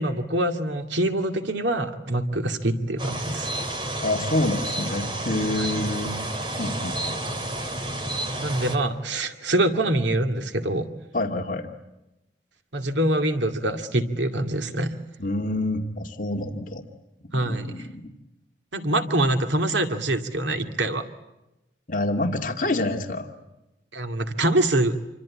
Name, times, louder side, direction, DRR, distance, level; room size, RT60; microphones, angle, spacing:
voice 1, 0.0-3.5 5.5-5.7 8.4-10.9 12.7-14.9 17.3-17.9 18.7-21.0 23.9-25.0, right 1 dB, 90° right, 6 dB, 2.3 m, -25 dB
sound 1, 3.0-8.8, right 1 dB, 25° right, 2.7 m, -30 dB
voice 2, 4.0-6.2 6.6-7.4 11.1-11.7 15.2-16.8 17.3-18.0 21.9-23.3, left 1 dB, 45° left, 3 dB, 2.3 m, -27 dB
28.0 x 24.5 x 8.6 m, 0.95 s
head